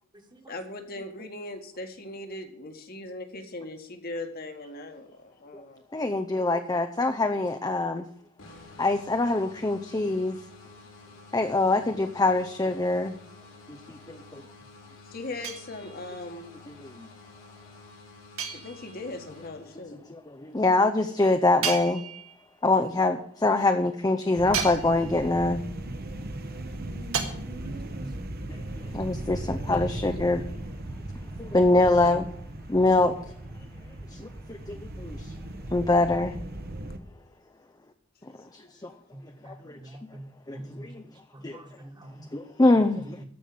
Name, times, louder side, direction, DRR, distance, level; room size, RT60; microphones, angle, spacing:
voice 1, 0.5-5.8 15.0-16.5 18.5-20.0 28.8-28.9 29.7-30.0 35.7-35.8 38.4-38.7, left 2 dB, 45° left, 5 dB, 1.6 m, -39 dB
voice 2, 5.9-8.1 8.8-10.4 11.3-13.2 13.7-14.4 17.0-17.1 20.1-22.0 22.6-25.6 28.5-30.5 31.4-32.3 32.7-33.2 34.1-35.3 35.7-36.4 38.5-38.9 39.4-39.8 40.5-41.0 41.4-41.6 42.3-43.2, left 2 dB, 20° left, 7 dB, 0.6 m, -24 dB
sound 1, 8.4-20.1, left 3 dB, 80° left, 4.2 m, -50 dB
sound 2, 15.4-16.2 18.4-19.2 21.6-22.5 24.5-25.3 27.1-27.2, right 7 dB, 75° right, 1.9 m, -33 dB
sound 3, 24.4-37.0, right 1 dB, 50° right, 1.0 m, -37 dB
voice 3, 27.6-28.1 30.9-31.0 39.4-39.5 39.8-40.2 40.5-40.9 41.3-42.3, right 1 dB, 20° right, 5 dB, 1.6 m, -44 dB
14.0 x 5.5 x 8.6 m, 0.66 s
head